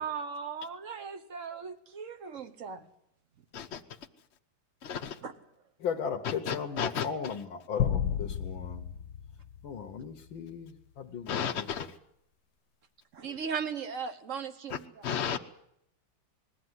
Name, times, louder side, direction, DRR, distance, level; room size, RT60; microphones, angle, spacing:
voice 1, 0.0-2.8 5.2-5.3 13.1-15.1, right 6 dB, 45° right, 10 dB, 1.4 m, -37 dB
voice 2, 4.8-5.2 6.2-7.1 11.3-11.9 14.7-15.4, left 7 dB, 45° left, 4 dB, 0.9 m, -33 dB
voice 3, 5.8-8.9 9.6-11.9, left 6 dB, 85° left, 2 dB, 1.8 m, -37 dB
sound 1, 7.8-10.4, left 8 dB, 65° left, 1.4 m, -33 dB
20.5 x 14.5 x 9.6 m, 0.77 s
omnidirectional pair, 2.1 m